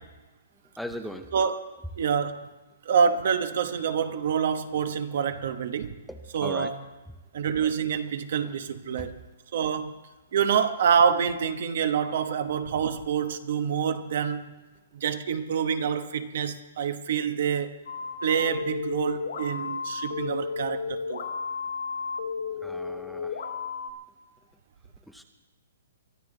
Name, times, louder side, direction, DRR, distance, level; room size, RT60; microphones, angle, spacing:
voice 1, 0.8-1.3 6.1-6.7 8.4-8.5 8.9-9.1 22.6-23.5 25.1-25.2, equal, ahead, 0.5 m, -39 dB
voice 2, 1.3-2.5 2.8-5.9 6.3-6.8 7.3-9.2 9.5-10.0 10.3-14.6 14.9-17.8 18.2-21.3, right 7 dB, 55° right, 1.1 m, -27 dB
sound 1, 17.9-23.9, left 5 dB, 80° left, 2.5 m, -33 dB
23.5 x 12.0 x 3.9 m
hypercardioid pair, 165°, 0 cm